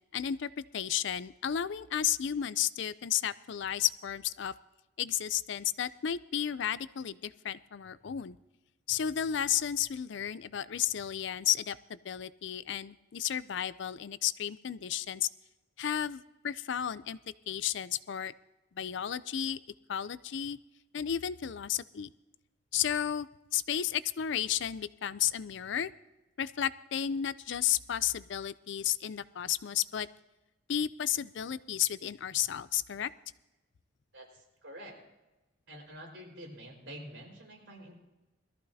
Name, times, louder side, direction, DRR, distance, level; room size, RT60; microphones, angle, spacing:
voice 1, 0.1-4.5 5.0-8.4 8.9-15.3 15.8-17.2 17.5-18.3 18.8-19.6 19.9-20.6 20.9-22.1 22.7-25.9 26.4-30.1 30.7-33.1, left 10 dB, 65° left, 17 dB, 0.4 m, -33 dB
voice 2, 34.1-35.0 35.7-38.0, equal, 70° right, -1 dB, 4.8 m, -47 dB
21.5 x 14.0 x 2.8 m, 1.0 s
head